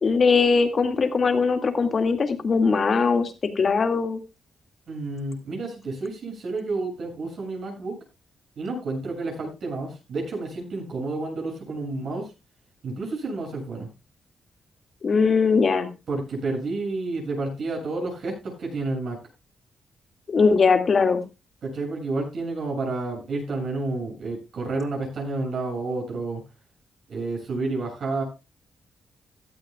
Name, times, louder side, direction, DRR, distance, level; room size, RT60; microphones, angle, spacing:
voice 1, 0.0-4.2 15.0-15.9 20.3-21.2, left 5 dB, 45° left, 7 dB, 2.1 m, -20 dB
voice 2, 4.9-8.0 8.6-12.3 12.8-13.9 16.1-19.2 21.6-26.4 27.1-28.2, right 3 dB, 65° right, 0 dB, 7.5 m, -30 dB
16.5 x 12.0 x 2.3 m, 0.27 s
cardioid pair, 85°, 0 cm